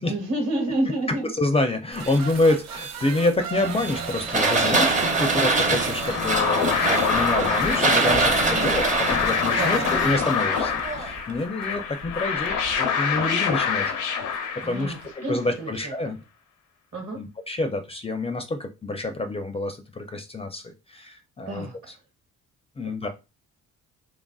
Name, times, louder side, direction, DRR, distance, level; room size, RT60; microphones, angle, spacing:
voice 1, 0.0-1.3 1.9-2.2 8.5-8.7 9.5-9.9 14.6-16.1 16.9-17.2 21.5-21.9, right 2 dB, 45° right, 0 dB, 1.1 m, -31 dB
voice 2, 0.8-13.9 14.5-16.2 17.2-21.7 22.8-23.1, left 2 dB, 20° left, 7 dB, 0.4 m, -27 dB
sound 1, 1.9-15.1, right 6 dB, 65° right, 0.6 m, -38 dB
sound 2, 3.6-11.2, right 3 dB, 25° right, 0.6 m, -24 dB
sound 3, 5.8-15.1, left 7 dB, 85° left, 0.7 m, -26 dB
3.1 x 2.5 x 2.3 m, 0.27 s
cardioid pair, 90°, 30 cm